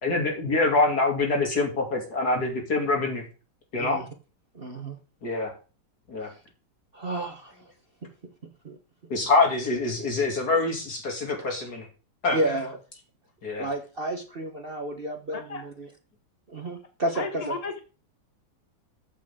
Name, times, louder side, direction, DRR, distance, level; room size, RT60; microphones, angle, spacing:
voice 1, 0.0-3.2 3.7-4.0 5.2-5.5 6.1-6.3 9.1-11.9 12.2-12.4 13.4-13.7, left 3 dB, 60° left, 1 dB, 3.3 m, -25 dB
voice 2, 4.5-5.0 6.9-7.6 8.6-8.8 11.4-11.5 12.3-12.8 13.6-15.9 16.5-17.6, right 1 dB, 35° right, 4 dB, 1.3 m, -31 dB
voice 3, 15.3-15.6 17.1-17.8, left 3 dB, 25° left, 6 dB, 1.0 m, -34 dB
14.5 x 8.0 x 3.7 m, 0.36 s
omnidirectional pair, 1.9 m